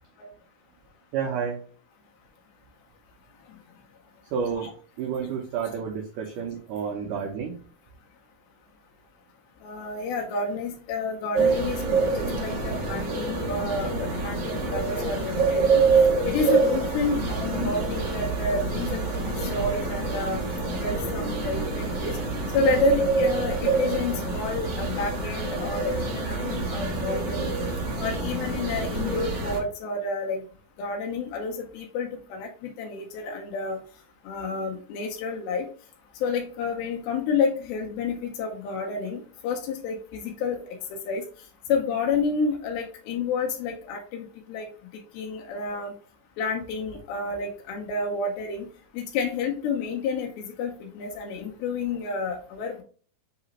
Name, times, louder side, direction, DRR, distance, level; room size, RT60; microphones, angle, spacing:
voice 1, 1.1-1.6 4.3-4.7 5.0-7.6, right 6 dB, 75° right, 1 dB, 2.0 m, -30 dB
voice 2, 9.6-15.8 16.3-20.4 20.8-22.2 22.5-27.5 28.0-30.4 30.8-33.8 34.3-35.7 36.2-40.6 40.9-41.2 41.7-44.7 45.1-45.9 46.4-48.7 48.9-52.8, left 4 dB, 85° left, 1 dB, 2.6 m, -30 dB
sound 1, 11.3-29.6, right 4 dB, 60° right, 1.7 m, -26 dB
5.9 x 2.9 x 2.8 m, 0.42 s
omnidirectional pair, 4.2 m